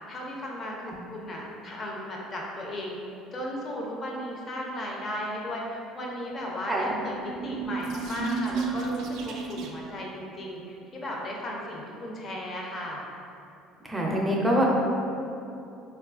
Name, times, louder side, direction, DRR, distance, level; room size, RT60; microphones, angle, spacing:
voice 1, 0.1-2.9 3.3-13.0, left 1 dB, 35° left, -2 dB, 0.6 m, -36 dB
sound 1, 6.8-10.0, right 4 dB, 65° right, 0.3 m, -32 dB
voice 2, 13.8-14.7, equal, 10° right, -3 dB, 0.5 m, -25 dB
4.0 x 2.3 x 2.4 m, 2.8 s
cardioid pair, 115°, 0 cm